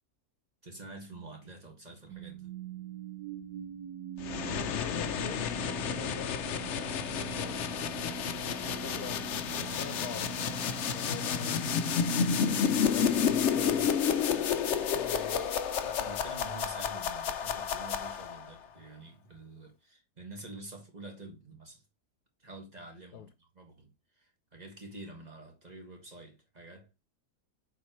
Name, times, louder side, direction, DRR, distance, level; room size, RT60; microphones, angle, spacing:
voice 1, 0.6-2.5 15.8-21.8 22.4-26.9, right 2 dB, 25° right, 2.0 m, -48 dB
sound 1, 2.1-14.3, right 7 dB, 85° right, 1.3 m, -43 dB
sound 2, 4.2-18.5, left 7 dB, 60° left, 0.9 m, -31 dB
voice 2, 4.7-7.7 8.4-11.9 12.7-14.0 14.9-15.5 23.1-23.3, left 10 dB, 80° left, 1.3 m, -45 dB
7.2 x 4.8 x 3.1 m
omnidirectional pair, 1.7 m